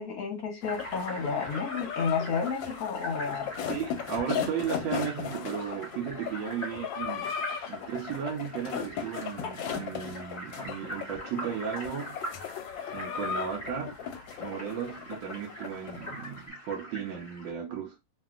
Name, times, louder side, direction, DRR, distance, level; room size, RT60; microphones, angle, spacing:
voice 1, 0.0-3.5, left 5 dB, 55° left, 1.1 m, -31 dB
sound 1, 0.6-16.4, left 7 dB, 75° left, 1.2 m, -37 dB
sound 2, 0.6-17.5, equal, 30° left, 1.1 m, -44 dB
voice 2, 3.7-7.3 7.7-12.2 12.9-13.9 14.4-18.1, right 8 dB, 80° right, 1.3 m, -35 dB
2.9 x 2.7 x 2.3 m
omnidirectional pair, 2.2 m